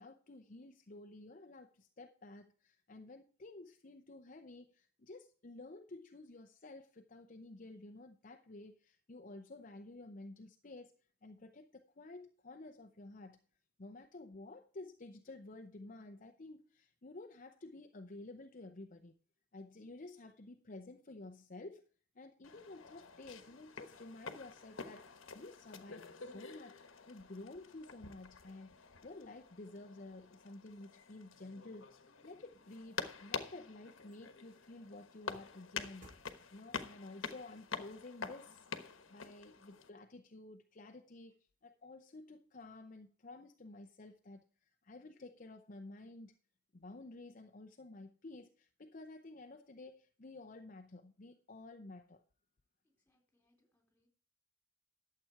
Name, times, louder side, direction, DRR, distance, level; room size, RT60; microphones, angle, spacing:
voice 1, 0.0-10.9 11.2-13.4 13.8-19.1 19.5-21.8 22.1-36.2 36.5-38.7 39.1-41.4 41.6-46.3 46.7-52.2, left 2 dB, 40° left, 0.7 m, -52 dB
sound 1, 22.4-39.9, left 5 dB, 85° left, 1.2 m, -48 dB
sound 2, 33.2-39.5 40.0-40.1, right 1 dB, 45° right, 5.0 m, -68 dB
voice 2, 52.8-54.1, left 1 dB, 10° left, 3.9 m, -79 dB
12.0 x 7.7 x 4.7 m
head